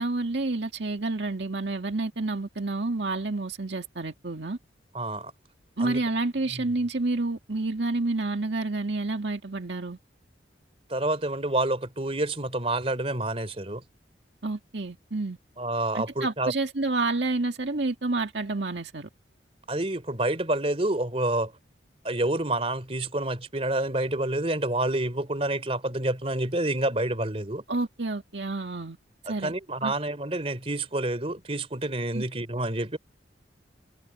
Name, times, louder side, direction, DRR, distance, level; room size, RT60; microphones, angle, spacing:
voice 1, 0.0-4.6 5.8-10.0 14.4-15.4 15.9-19.1 27.7-29.0 29.3-29.5 29.8-29.9 32.1-32.2, right 2 dB, 70° right, 2.0 m, -29 dB
voice 2, 4.9-5.3 5.8-6.0 6.5-6.6 10.9-13.8 15.6-16.5 19.7-21.5 22.0-27.6 29.2-33.0, right 1 dB, 30° right, 3.4 m, -28 dB
head